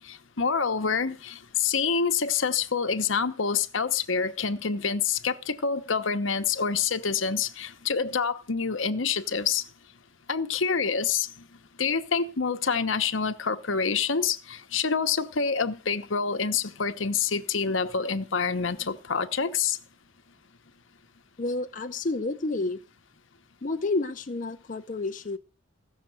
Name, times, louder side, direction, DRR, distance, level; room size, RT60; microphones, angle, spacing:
voice 1, 0.1-9.6 10.3-11.3 11.8-19.8, left 5 dB, 75° left, 1.0 m, -27 dB
voice 2, 21.4-22.8 23.6-25.4, left 2 dB, 40° left, 0.6 m, -30 dB
16.0 x 6.6 x 7.7 m
head